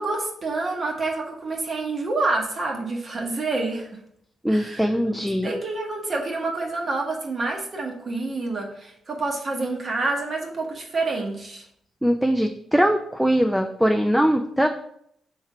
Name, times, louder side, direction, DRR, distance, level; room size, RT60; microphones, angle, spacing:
voice 1, 0.0-4.0 4.5-4.9 5.4-11.7, right 3 dB, 50° right, 1 dB, 1.0 m, -28 dB
voice 2, 4.4-5.5 12.0-14.7, equal, ahead, 5 dB, 0.3 m, -21 dB
3.6 x 3.2 x 4.5 m, 0.71 s
cardioid pair, 75°, 0 cm